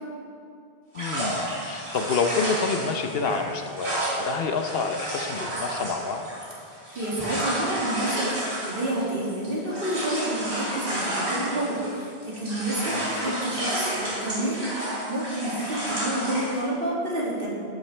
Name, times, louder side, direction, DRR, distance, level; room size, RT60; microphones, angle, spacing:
voice 1, 0.9-6.3 12.9-13.1, left 4 dB, 65° left, 6 dB, 0.9 m, -28 dB
sound 1, 0.9-12.0 12.3-16.6, right 1 dB, 80° right, 3.0 m, -31 dB
voice 2, 6.9-17.5, right 1 dB, 60° right, -5 dB, 2.4 m, -29 dB
11.5 x 9.6 x 3.3 m, 2.3 s
omnidirectional pair, 1.1 m